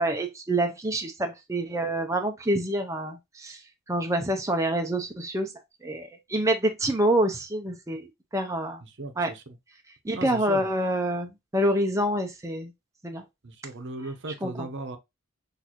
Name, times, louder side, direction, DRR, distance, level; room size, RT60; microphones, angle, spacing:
voice 1, 0.0-3.6 3.9-5.5 5.8-8.1 8.3-8.8 9.2-9.3 10.0-12.7 13.0-13.2 14.4-14.7, right 1 dB, 15° right, 0.6 m, -27 dB
voice 2, 8.8-9.6 10.1-10.7 13.4-15.0, right 2 dB, 55° right, 0.9 m, -37 dB
6.2 x 2.7 x 3.0 m
head